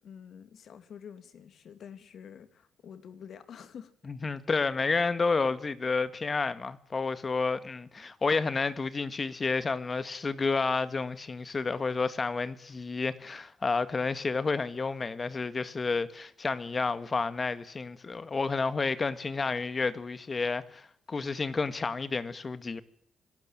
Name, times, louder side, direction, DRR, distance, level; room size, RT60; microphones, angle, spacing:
voice 1, 0.0-3.9, left 7 dB, 60° left, 2.8 m, -48 dB
voice 2, 4.1-22.8, left 4 dB, 30° left, 1.9 m, -30 dB
25.5 x 13.0 x 9.0 m
cardioid pair, 90°, 0 cm